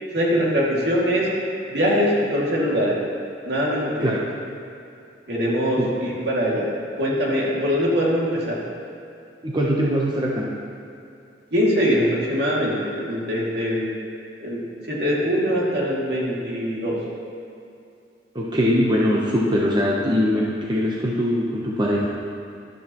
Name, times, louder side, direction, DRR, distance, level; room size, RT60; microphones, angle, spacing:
voice 1, 0.1-1.3 1.7-3.0 3.4-4.1 5.3-6.7 7.0-8.6 11.5-13.9 14.4-17.0, equal, 65° right, -5 dB, 2.3 m, -22 dB
voice 2, 9.4-10.5 18.3-22.1, equal, 25° right, -4 dB, 0.8 m, -22 dB
12.5 x 11.5 x 3.0 m, 2.5 s
head